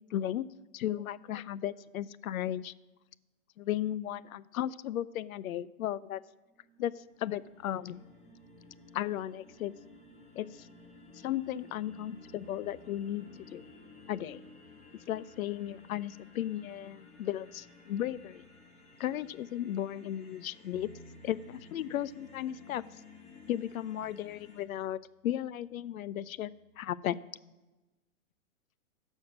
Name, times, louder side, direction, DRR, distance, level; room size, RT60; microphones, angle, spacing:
voice 1, 0.1-0.5 0.7-2.7 3.6-6.2 6.8-8.0 8.9-9.8 10.4-10.7 11.2-13.7 14.1-14.4 15.1-18.4 19.0-20.9 21.2-22.8 23.5-26.5 26.8-27.2, left 12 dB, 80° left, 20 dB, 0.5 m, -35 dB
sound 1, 6.5-24.6, left 3 dB, 15° left, 1.3 m, -55 dB
Bass guitar, 20.7-27.0, right 2 dB, 70° right, 1.1 m, -59 dB
9.7 x 6.4 x 7.3 m, 1.1 s
hypercardioid pair, 155°, 41 cm